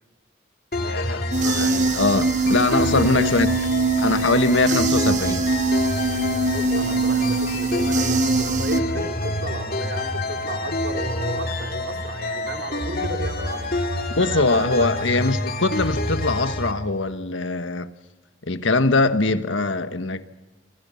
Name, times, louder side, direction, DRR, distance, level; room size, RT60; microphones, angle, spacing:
sound 1, 0.7-16.7, left 1 dB, 50° left, 2.7 m, -28 dB
voice 1, 0.8-3.5 4.0-5.5 14.1-17.9 18.4-20.3, left 3 dB, 85° left, 1.5 m, -22 dB
sound 2, 1.3-8.8, right 2 dB, 40° right, 1.2 m, -22 dB
voice 2, 2.6-3.3 6.1-13.7 14.2-15.1, right 2 dB, 60° right, 3.0 m, -34 dB
29.0 x 26.5 x 5.8 m
head